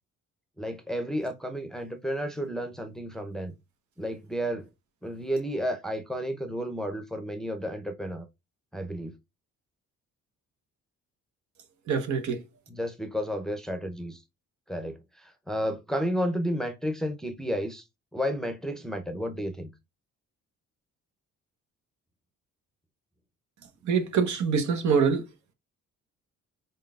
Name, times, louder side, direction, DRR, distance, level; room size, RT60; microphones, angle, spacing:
voice 1, 0.6-3.5 4.0-4.7 5.0-8.2 8.7-9.1 12.7-14.2 14.7-17.8 18.1-19.7, equal, ahead, 0.7 m, -32 dB
voice 2, 11.9-12.4 23.8-25.2, right 6 dB, 70° right, 1.1 m, -25 dB
4.0 x 3.7 x 2.4 m
cardioid pair, 90°, 30 cm